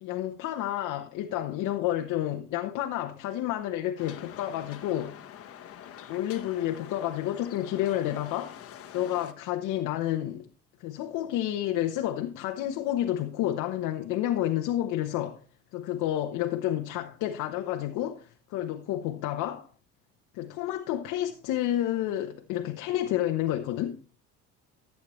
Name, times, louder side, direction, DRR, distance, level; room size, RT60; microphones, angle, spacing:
voice 1, 0.0-5.2 6.1-8.6 8.9-10.4 10.8-15.4 15.7-19.7 20.3-24.0, left 12 dB, 75° left, 0.9 m, -30 dB
sound 1, 4.0-9.3, left 10 dB, 50° left, 1.2 m, -46 dB
14.5 x 8.5 x 3.1 m
cardioid pair, 125°, 31 cm